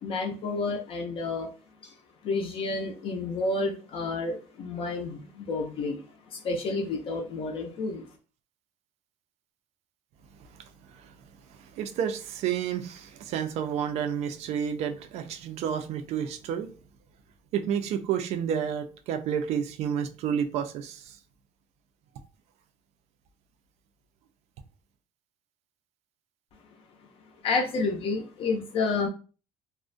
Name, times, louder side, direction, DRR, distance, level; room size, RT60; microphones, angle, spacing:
voice 1, 0.0-1.5 1.8-1.9 2.2-8.1 27.4-29.1, left 3 dB, 45° left, 0.4 m, -30 dB
voice 2, 11.8-16.7 17.5-21.1, right 8 dB, 55° right, 0.4 m, -30 dB
2.4 x 2.1 x 2.5 m
cardioid pair, 150°, 13 cm